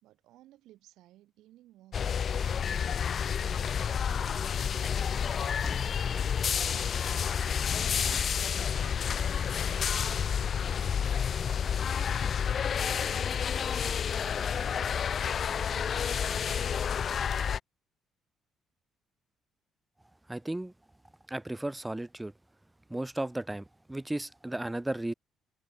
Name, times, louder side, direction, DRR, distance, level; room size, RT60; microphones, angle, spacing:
voice 1, 0.0-2.9 3.3-7.5 8.1-10.6 11.2-15.9, right 15 dB, 80° right, 2.4 m, -57 dB
sound 1, 1.9-17.6, left 7 dB, 50° left, 0.4 m, -30 dB
sound 2, 5.6-6.0 6.6-6.7 7.0-7.1 7.4-7.5 8.0-8.6 9.1-9.4 9.7-9.8 10.0-10.3 10.8-10.9 11.1-11.3 11.7-11.8 12.0-12.1, left 3 dB, 25° left, 4.6 m, -44 dB
voice 2, 20.3-20.7 21.3-22.3 22.9-25.1, right 1 dB, 10° right, 0.7 m, -34 dB
supercardioid pair, 70°, 0 cm